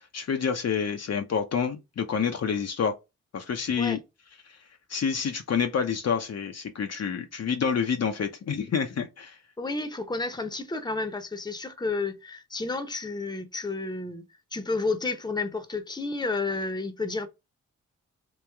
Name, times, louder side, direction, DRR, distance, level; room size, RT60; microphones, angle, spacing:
voice 1, 0.1-2.9 3.3-4.0 4.9-9.4, left 6 dB, 55° left, 0.6 m, -28 dB
voice 2, 9.6-14.2 14.5-17.3, left 3 dB, 15° left, 0.8 m, -31 dB
3.1 x 2.9 x 3.4 m
cardioid pair, 50°, 30 cm